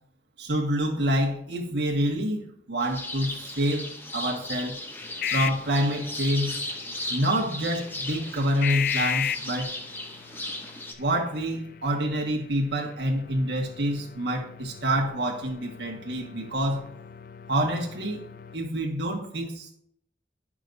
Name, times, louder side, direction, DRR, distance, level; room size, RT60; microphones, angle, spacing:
voice 1, 0.4-4.8 5.3-6.5 7.1-9.7 11.0-16.9 17.5-18.2 18.5-19.7, equal, 70° right, 0 dB, 1.6 m, -27 dB
sound 1, 2.8-10.9, left 1 dB, 10° left, 0.7 m, -36 dB
sound 2, 5.0-18.6, left 9 dB, 50° left, 0.3 m, -37 dB
11.0 x 6.1 x 2.7 m, 0.68 s
head